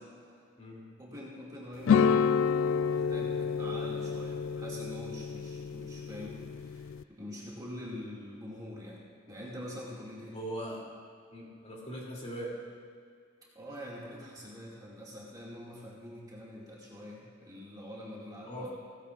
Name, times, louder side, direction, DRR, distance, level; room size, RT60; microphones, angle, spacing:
voice 1, 1.0-2.5 2.9-10.4 13.5-18.7, equal, 20° right, -6 dB, 2.1 m, -45 dB
sound 1, 1.8-7.0, left 6 dB, 75° left, 0.3 m, -29 dB
voice 2, 10.3-10.9 11.3-12.6 18.4-18.7, right 1 dB, 35° left, -4 dB, 2.7 m, -40 dB
16.5 x 15.0 x 2.4 m, 2.2 s
head